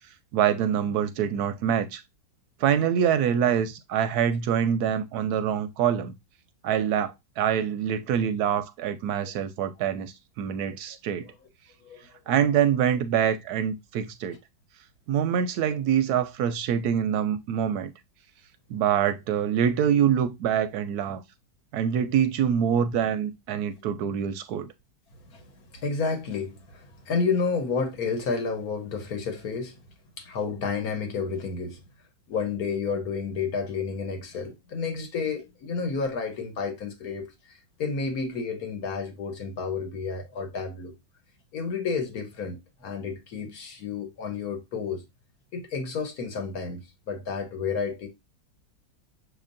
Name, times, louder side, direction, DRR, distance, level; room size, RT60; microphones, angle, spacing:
voice 1, 0.3-2.0 2.6-6.1 6.6-11.3 12.3-14.4 15.1-17.9 18.7-21.2 21.7-24.7, right 8 dB, 70° right, 1.0 m, -25 dB
voice 2, 25.3-29.8 30.2-31.8 32.3-40.9 41.5-45.0 45.5-48.1, left 5 dB, 60° left, 1.3 m, -31 dB
6.4 x 2.9 x 2.5 m
omnidirectional pair, 1.9 m